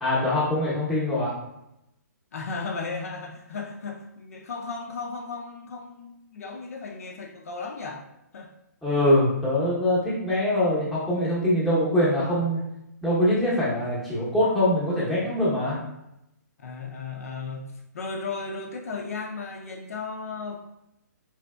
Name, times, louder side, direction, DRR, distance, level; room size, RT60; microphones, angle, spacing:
voice 1, 0.0-1.4 8.8-12.6 13.0-15.8, left 1 dB, ahead, -9 dB, 0.8 m, -23 dB
voice 2, 2.3-8.0 8.3-8.5 16.6-20.6, left 4 dB, 55° left, 1 dB, 0.5 m, -35 dB
3.9 x 3.2 x 2.2 m, 0.86 s
hypercardioid pair, 165°, 10 cm